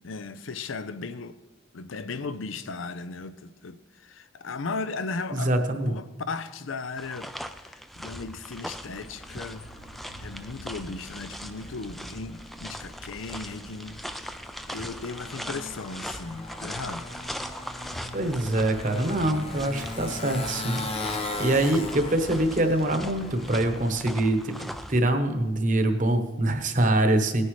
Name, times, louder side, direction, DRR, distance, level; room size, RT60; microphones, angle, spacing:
voice 1, 0.0-1.4 1.7-7.3 7.6-9.7 10.2-14.3 14.7-17.1, left 4 dB, 90° left, 0.6 m, -36 dB
voice 2, 5.3-5.9 18.1-27.4, right 1 dB, 40° right, 1.0 m, -25 dB
sound 1, 7.0-25.0, equal, ahead, 0.3 m, -40 dB
Motorcycle, 8.8-24.1, left 2 dB, 30° left, 0.8 m, -39 dB
18.0 x 9.9 x 3.2 m
head